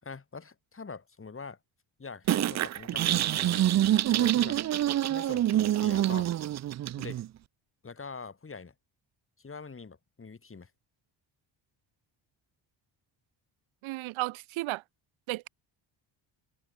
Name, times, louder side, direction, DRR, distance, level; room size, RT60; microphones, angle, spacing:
voice 1, 0.0-1.6 2.0-3.6 4.1-4.6 5.1-6.3 7.0-7.2 7.8-8.7 9.4-10.7, left 4 dB, 25° left, 7.1 m, -44 dB
sound 1, 2.3-7.3, right 12 dB, 40° right, 0.4 m, -26 dB
voice 2, 13.8-14.8 15.3-15.5, right 20 dB, 85° right, 0.6 m, -33 dB
open air
cardioid pair, 120°, 47 cm